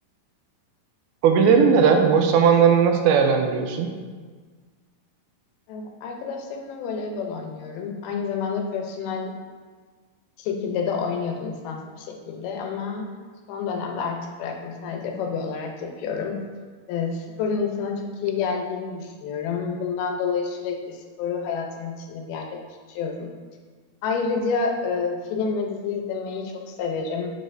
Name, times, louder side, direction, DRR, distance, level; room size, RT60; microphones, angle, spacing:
voice 1, 1.2-3.9, right 6 dB, 90° right, 4 dB, 2.5 m, -17 dB
voice 2, 5.7-9.3 10.4-13.1 13.5-16.4 16.9-22.6 22.9-23.3 24.0-27.3, left 5 dB, 85° left, 2 dB, 2.6 m, -29 dB
6.9 x 6.4 x 2.6 m, 1.5 s
omnidirectional pair, 4.3 m